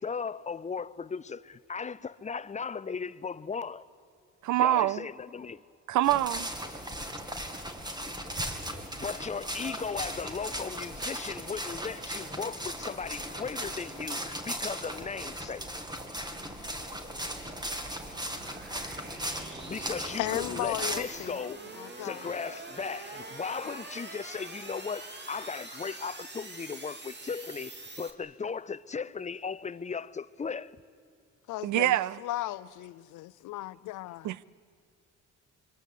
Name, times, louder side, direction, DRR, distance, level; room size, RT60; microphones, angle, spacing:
voice 1, 0.0-3.8 4.6-5.6 8.9-15.7 19.7-21.6 22.0-27.7 28.0-30.7, left 5 dB, 25° left, 0.6 m, -37 dB
voice 2, 4.4-5.0 5.9-6.5 31.6-32.2 34.2-34.4, right 14 dB, 75° right, 0.6 m, -25 dB
sound 1, 6.0-21.0, right 1 dB, 15° right, 2.2 m, -37 dB
sound 2, 15.0-28.1, right 2 dB, 35° right, 2.7 m, -45 dB
voice 3, 20.2-21.4 21.8-22.3 31.5-34.3, left 16 dB, 85° left, 0.6 m, -36 dB
26.0 x 24.5 x 8.4 m
cardioid pair, 90°, 30 cm